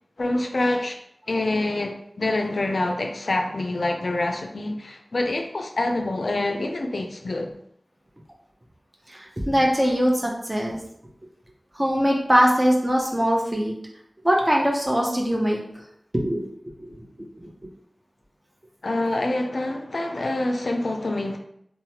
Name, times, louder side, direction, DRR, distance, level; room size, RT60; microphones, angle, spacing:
voice 1, 0.2-1.0 1.3-7.5 18.8-21.4, left 2 dB, 85° left, 0.3 m, -26 dB
voice 2, 9.1-10.8 11.8-13.7 14.2-15.6 16.1-16.4 16.8-17.0 17.4-17.5, equal, 25° right, 0.7 m, -22 dB
3.0 x 2.1 x 2.8 m
wide cardioid pair, 40°, 0 cm